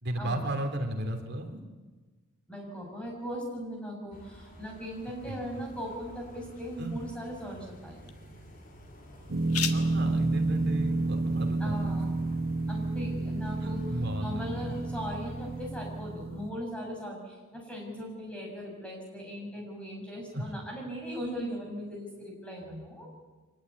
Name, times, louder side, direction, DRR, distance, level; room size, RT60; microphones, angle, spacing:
voice 1, 0.0-1.6 5.3-5.6 6.8-7.0 9.7-11.9 13.6-14.8 20.3-20.5, right 1 dB, 50° right, 4 dB, 3.2 m, -35 dB
voice 2, 2.5-8.0 11.6-12.1 12.7-13.8 14.2-23.1, equal, 5° left, 0 dB, 6.7 m, -39 dB
sound 1, 4.1-15.6, equal, 40° left, 4.4 m, -52 dB
sound 2, 5.5-13.0, left 9 dB, 90° left, 1.8 m, -43 dB
sound 3, 9.3-16.5, right 2 dB, 70° right, 1.5 m, -30 dB
25.0 x 19.0 x 9.7 m, 1.3 s
head